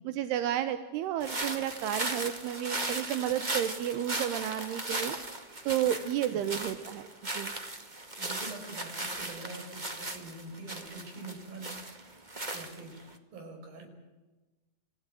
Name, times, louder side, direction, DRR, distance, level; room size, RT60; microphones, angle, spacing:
voice 1, 0.0-5.2 5.7-7.0 7.3-7.5, right 11 dB, 80° right, 10 dB, 3.1 m, -31 dB
sound 1, 1.2-13.1, right 2 dB, 35° right, 0.7 m, -37 dB
voice 2, 6.3-6.6 8.2-12.2 12.5-12.9 13.3-13.9, right 3 dB, 60° right, 5 dB, 6.7 m, -45 dB
29.0 x 16.0 x 9.2 m, 1.2 s
omnidirectional pair, 4.6 m